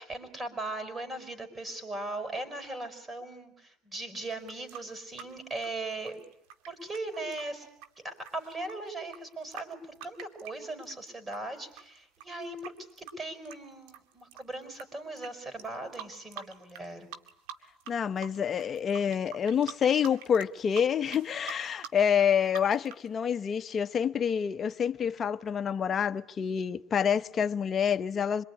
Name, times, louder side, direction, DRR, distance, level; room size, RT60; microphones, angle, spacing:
voice 1, 0.0-6.2 6.7-7.7 8.0-17.1, right 2 dB, 25° right, 5.6 m, -39 dB
sound 1, 4.3-11.4 11.7-14.8 15.2-15.3 15.6-16.9 17.1-17.9 18.2-23.1, right 9 dB, 80° right, 2.1 m, -45 dB
voice 2, 17.9-28.4, left 7 dB, 40° left, 1.1 m, -27 dB
26.0 x 22.5 x 10.0 m
supercardioid pair, 85°, 0 cm